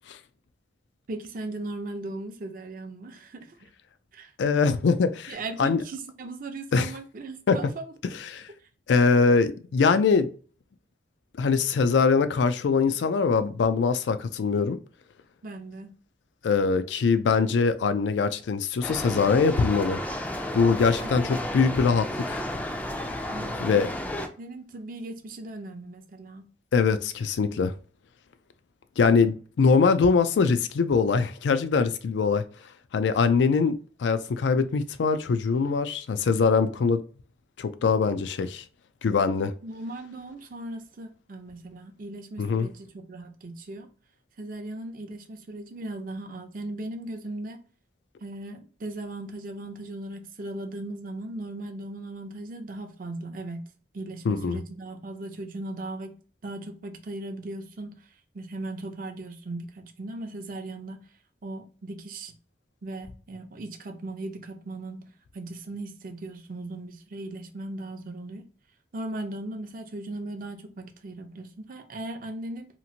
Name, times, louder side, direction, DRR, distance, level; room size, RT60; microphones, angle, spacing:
voice 1, 1.1-3.7 4.1-4.3 5.3-8.1 15.4-15.9 20.8-21.5 23.3-23.7 24.4-26.5 39.6-43.9 44.4-47.6 48.2-53.7 53.9-56.1 56.4-57.9 58.3-61.0 61.4-62.3 62.8-65.1 65.3-68.4 68.9-72.7, right 2 dB, 50° right, 0.5 m, -38 dB
voice 2, 4.4-5.8 6.7-6.9 7.5-7.6 8.2-8.5 8.9-10.3 11.4-14.8 16.4-20.0 20.5-22.4 23.6-23.9 26.7-27.7 29.0-32.4 32.9-37.0 37.6-38.6 39.0-39.5 42.4-42.7 54.3-54.6, left 5 dB, 85° left, 0.4 m, -23 dB
sound 1, 18.8-24.3, left 1 dB, 10° left, 0.3 m, -32 dB
2.9 x 2.5 x 2.7 m
head